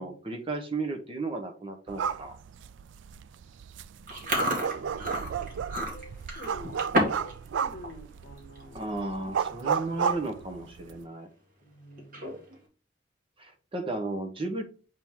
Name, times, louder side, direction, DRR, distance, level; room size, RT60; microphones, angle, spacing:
voice 1, 0.0-2.4 8.7-11.3 13.4-14.6, right 2 dB, 30° right, 5 dB, 0.9 m, -34 dB
sound 1, 1.9-11.0, right 7 dB, 75° right, 0.4 m, -33 dB
Chewing mastication, 4.1-7.3 7.6-7.9 8.4-8.6 9.4-9.5 9.7-10.0 10.4-10.5 12.0-12.6, equal, 45° right, 2.2 m, -30 dB
voice 2, 4.7-5.5 5.7-9.3 11.6-12.4, left 1 dB, 45° left, 4 dB, 1.6 m, -48 dB
7.8 x 3.7 x 4.5 m, 0.37 s
head